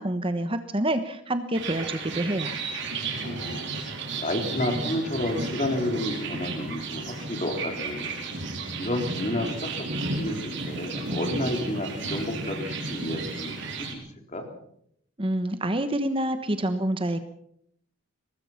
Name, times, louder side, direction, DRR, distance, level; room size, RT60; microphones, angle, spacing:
voice 1, 0.0-2.6 15.2-17.2, right 1 dB, 25° right, 10 dB, 1.2 m, -27 dB
sound 1, 1.5-13.9, right 3 dB, 60° right, 4.7 m, -33 dB
voice 2, 3.2-3.7 4.2-8.1 8.8-14.0 14.3-14.5, left 1 dB, 35° left, 4 dB, 3.9 m, -31 dB
23.5 x 19.5 x 5.9 m, 0.70 s
head